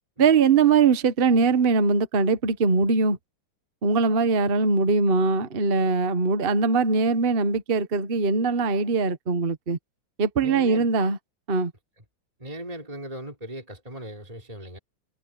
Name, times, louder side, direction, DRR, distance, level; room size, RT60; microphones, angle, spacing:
voice 1, 0.2-3.2 3.8-9.8 10.2-11.2 11.5-11.7, right 4 dB, 35° right, 1.1 m, -21 dB
voice 2, 10.4-10.9 12.4-14.8, right 1 dB, 15° right, 3.7 m, -38 dB
omnidirectional pair, 2.3 m